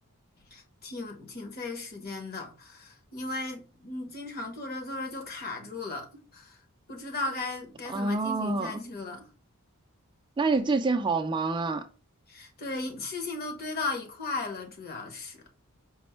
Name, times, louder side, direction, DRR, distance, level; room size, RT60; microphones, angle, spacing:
voice 1, 0.5-6.6 6.9-9.3 12.3-15.4, left 3 dB, 45° left, 1.0 m, -36 dB
voice 2, 7.9-8.7 10.4-11.8, right 3 dB, 20° right, 0.3 m, -27 dB
5.1 x 2.1 x 4.3 m
head